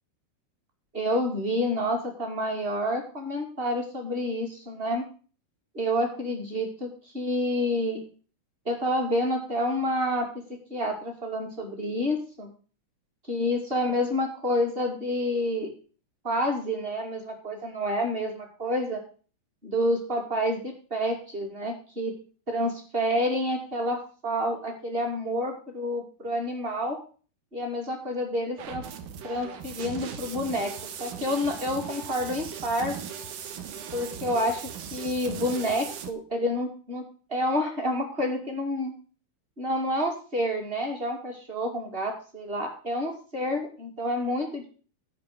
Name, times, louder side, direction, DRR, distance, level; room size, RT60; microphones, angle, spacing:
voice 1, 0.9-5.0 5.7-8.0 8.6-10.3 10.7-12.5 13.3-15.7 16.2-19.0 19.6-22.1 22.5-27.0 27.5-28.8 29.2-30.7 31.0-32.9 33.9-37.0 37.3-38.9 39.6-44.6, equal, 20° right, 1 dB, 1.5 m, -28 dB
sound 1, 28.6-36.1, right 8 dB, 70° right, 2.1 m, -38 dB
13.5 x 5.4 x 6.5 m, 0.39 s
omnidirectional pair, 5.0 m